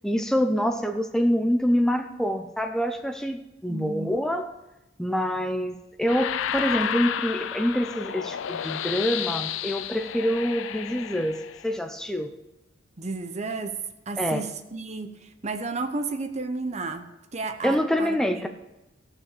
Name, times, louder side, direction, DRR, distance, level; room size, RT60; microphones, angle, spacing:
voice 1, 0.0-4.5 5.0-12.3 14.2-14.4 17.6-18.5, equal, 5° left, 5 dB, 0.6 m, -26 dB
voice 2, 3.7-4.2 13.0-13.8 14.1-18.5, right 3 dB, 35° right, 8 dB, 0.8 m, -32 dB
sound 1, 6.1-11.7, left 9 dB, 85° left, 0.4 m, -32 dB
14.0 x 6.0 x 6.7 m, 0.98 s
head